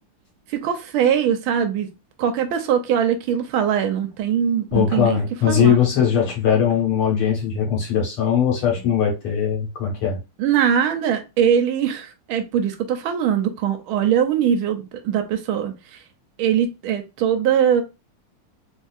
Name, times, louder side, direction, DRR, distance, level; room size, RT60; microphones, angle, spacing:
voice 1, 0.5-1.9 2.2-5.2 5.5-5.8 10.4-16.0 16.4-17.8, right 8 dB, 80° right, 1.4 m, -21 dB
voice 2, 4.7-10.2, left 8 dB, 75° left, 2.1 m, -20 dB
3.9 x 2.7 x 2.4 m
omnidirectional pair, 2.4 m